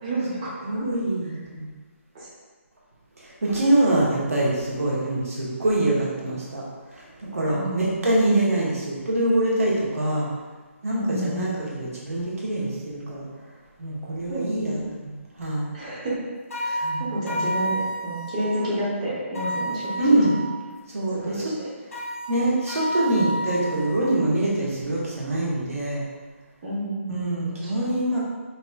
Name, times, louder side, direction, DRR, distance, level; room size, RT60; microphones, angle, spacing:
voice 1, 0.0-0.9 1.2-1.3 2.1-2.3 7.5-7.9 10.9-11.6 14.3-14.8 15.7-16.2 16.5-20.2 21.1-21.7 26.6-27.7, right 1 dB, 25° right, -7 dB, 0.9 m, -30 dB
voice 2, 0.6-1.7 3.2-6.6 6.9-10.3 10.8-13.3 13.8-15.1 15.4-15.6 16.8-17.2 20.0-20.4 20.9-21.5 22.3-26.0 27.1-28.2, right 1 dB, 85° right, -5 dB, 1.3 m, -24 dB
sound 1, 16.5-18.6 19.3-20.6 21.9-24.1, right 1 dB, 90° left, 0.7 m, -30 dB
4.7 x 3.0 x 2.3 m, 1.4 s
hypercardioid pair, 170°, 8 cm